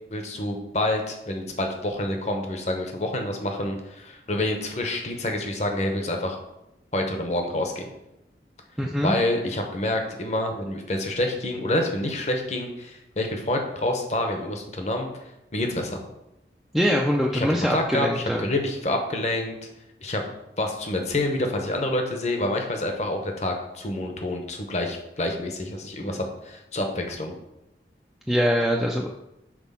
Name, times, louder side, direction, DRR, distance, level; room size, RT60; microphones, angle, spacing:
voice 1, 0.1-6.4 6.9-7.8 9.0-15.1 15.5-16.0 17.3-19.6 20.0-20.2 20.6-27.3, left 1 dB, 40° left, 3 dB, 1.0 m, -27 dB
voice 2, 8.8-9.1 16.7-18.5 28.3-29.1, equal, ahead, -2 dB, 0.4 m, -23 dB
6.1 x 4.0 x 5.6 m, 0.89 s
head